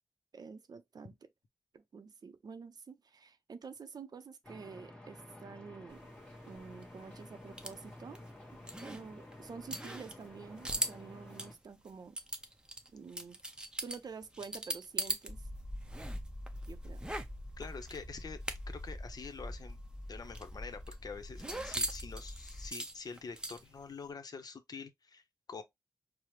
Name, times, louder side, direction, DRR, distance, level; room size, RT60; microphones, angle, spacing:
voice 1, 0.3-1.2 1.7-6.0 6.5-8.2 8.8-12.2 12.9-13.4 13.8-15.5 16.7-17.0 21.4-21.7, right 5 dB, 75° right, 0.5 m, -49 dB
sound 1, 4.4-11.5, left 1 dB, 10° left, 1.0 m, -52 dB
sound 2, 5.9-15.3 15.6-18.9 19.2-19.3 19.6-23.9, right 1 dB, 10° right, 0.5 m, -41 dB
sound 3, 15.3-22.7, left 1 dB, 30° left, 1.1 m, -45 dB
voice 2, 17.6-18.4 18.7-19.8 20.1-25.2 25.5-25.6, left 5 dB, 70° left, 0.6 m, -46 dB
4.8 x 2.0 x 3.0 m
wide cardioid pair, 100°, 7 cm